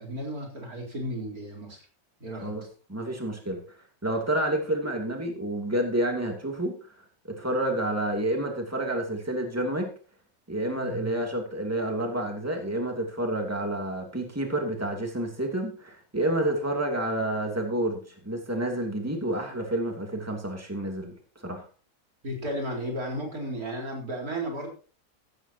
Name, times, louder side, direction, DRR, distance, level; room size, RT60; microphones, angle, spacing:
voice 1, 0.0-1.8 2.2-2.5 10.8-11.1 22.2-24.7, right 1 dB, 85° right, 0 dB, 4.7 m, -34 dB
voice 2, 2.4-3.6 4.0-6.8 7.3-9.9 10.5-21.1 21.4-21.7, right 1 dB, 10° right, 2 dB, 2.8 m, -29 dB
15.0 x 13.5 x 2.9 m, 0.35 s
omnidirectional pair, 1.5 m